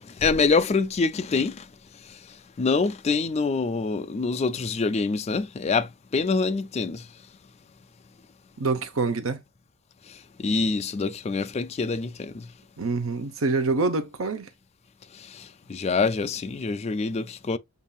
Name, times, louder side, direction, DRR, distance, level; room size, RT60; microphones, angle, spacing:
voice 1, 0.2-1.6 2.6-7.0 10.4-12.5 15.4-17.6, left 4 dB, 30° left, 0.4 m, -25 dB
voice 2, 8.6-9.4 12.8-14.5, right 3 dB, 65° right, 0.8 m, -26 dB
6.9 x 2.7 x 2.3 m
head